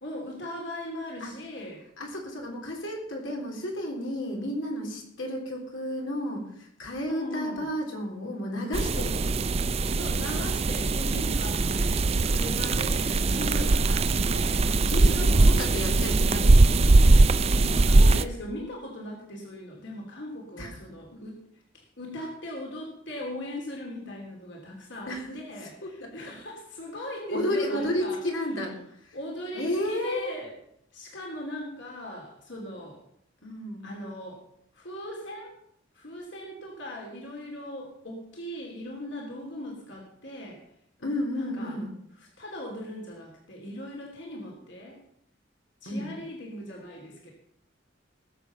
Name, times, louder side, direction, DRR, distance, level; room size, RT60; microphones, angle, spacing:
voice 1, 0.0-1.8 7.1-7.6 8.6-8.8 9.9-15.6 17.7-21.4 22.0-28.2 29.1-30.5 30.9-33.0 33.8-34.4 34.7-35.5 35.9-40.6 41.3-41.8 42.4-45.0 45.8-47.3, left 1 dB, 65° left, -1 dB, 3.1 m, -39 dB
voice 2, 2.0-9.5 13.0-13.7 14.9-16.8 17.5-17.9 20.6-20.7 21.1-21.2 25.1-26.3 27.3-28.8 29.0-29.2 29.5-30.3 33.4-33.9 41.0-41.9 45.9-46.1, left 1 dB, 85° left, 0 dB, 3.6 m, -32 dB
sound 1, 8.7-18.2, right 2 dB, 30° right, 0.5 m, -21 dB
19.5 x 7.3 x 5.7 m, 0.70 s
head